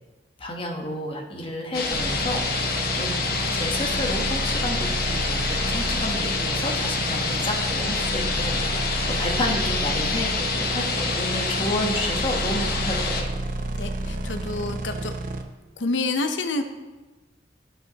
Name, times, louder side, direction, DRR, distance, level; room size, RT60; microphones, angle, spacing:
voice 1, 0.4-13.3, left 1 dB, 30° left, 0 dB, 1.1 m, -31 dB
sound 1, 1.7-13.2, left 4 dB, 55° left, 1.0 m, -27 dB
sound 2, 1.9-15.4, right 2 dB, 50° right, 0.6 m, -31 dB
voice 2, 13.8-15.1 15.8-16.6, left 3 dB, 90° left, 7 dB, 0.7 m, -28 dB
12.5 x 5.5 x 2.9 m, 1.2 s
head